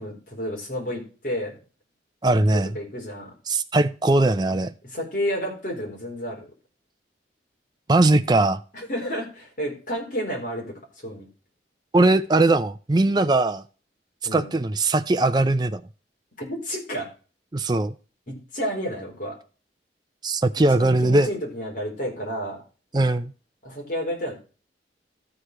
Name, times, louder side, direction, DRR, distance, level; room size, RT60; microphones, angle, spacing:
voice 1, 0.0-1.6 2.3-3.3 4.9-6.5 8.7-11.3 14.2-14.5 16.4-17.1 18.3-19.4 20.7-22.6 23.6-24.3, equal, 45° left, 4.1 m, -31 dB
voice 2, 2.2-2.7 3.5-4.7 7.9-8.6 11.9-13.6 14.3-15.8 17.5-17.9 20.2-21.3 22.9-23.3, right 2 dB, 25° right, 0.5 m, -20 dB
13.0 x 4.9 x 4.8 m
head